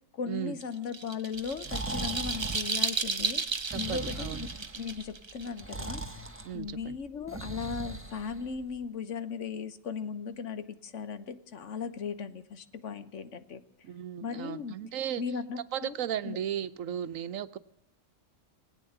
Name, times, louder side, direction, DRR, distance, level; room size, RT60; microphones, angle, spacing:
voice 1, 0.1-3.4 3.7-6.0 6.5-13.6 14.2-14.8 15.2-15.9 16.2-16.4, left 6 dB, 70° left, 12 dB, 1.3 m, -37 dB
sound 1, 0.6-6.4, right 4 dB, 30° right, 0.6 m, -34 dB
Breathing, 1.4-8.8, right 2 dB, 10° right, 1.2 m, -40 dB
voice 2, 3.7-4.5 6.4-7.0 13.8-15.2 15.7-17.6, right 10 dB, 85° right, 13 dB, 1.2 m, -35 dB
20.0 x 9.2 x 8.0 m, 0.84 s
omnidirectional pair, 1.3 m